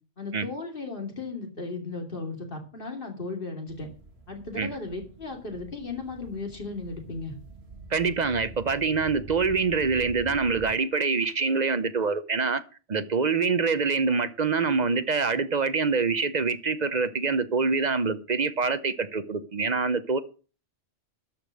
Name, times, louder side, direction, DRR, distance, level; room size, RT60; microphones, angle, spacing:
voice 1, 0.2-3.9 4.3-7.4, left 3 dB, 45° left, 2.9 m, -36 dB
sound 1, 3.7-10.7, right 2 dB, 60° right, 2.3 m, -46 dB
voice 2, 7.9-12.6 12.9-20.2, right 4 dB, 40° right, 0.7 m, -25 dB
13.0 x 5.2 x 7.6 m
omnidirectional pair, 1.2 m